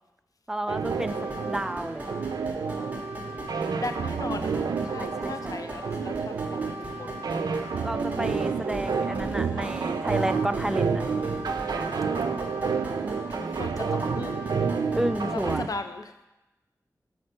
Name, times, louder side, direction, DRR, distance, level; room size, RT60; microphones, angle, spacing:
voice 1, 0.5-1.2 1.4-2.1 5.0-5.6 7.8-11.0 14.9-15.7, right 1 dB, 5° right, 11 dB, 0.3 m, -31 dB
sound 1, 0.7-15.7, right 5 dB, 85° right, 0.3 m, -30 dB
sound 2, 0.8-15.6, right 1 dB, 25° right, 1.4 m, -38 dB
voice 2, 3.7-4.5 4.8-7.1 13.3-14.5 15.2-16.1, left 3 dB, 65° left, 8 dB, 0.5 m, -37 dB
7.8 x 4.3 x 4.3 m, 0.99 s
wide cardioid pair, 65°, 7 cm